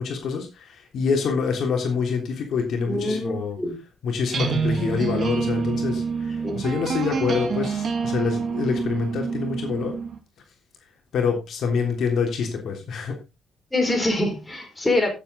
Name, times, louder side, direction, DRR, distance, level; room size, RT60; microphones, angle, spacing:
voice 1, 0.0-3.6 4.0-9.9 11.1-13.2, left 5 dB, 65° left, 3.3 m, -26 dB
voice 2, 2.9-3.7 6.4-6.6 13.7-15.1, left 1 dB, 15° left, 5.1 m, -24 dB
sound 1, 4.3-10.2, right 5 dB, 50° right, 2.6 m, -27 dB
14.5 x 7.7 x 4.0 m
cardioid pair, 90°, 0 cm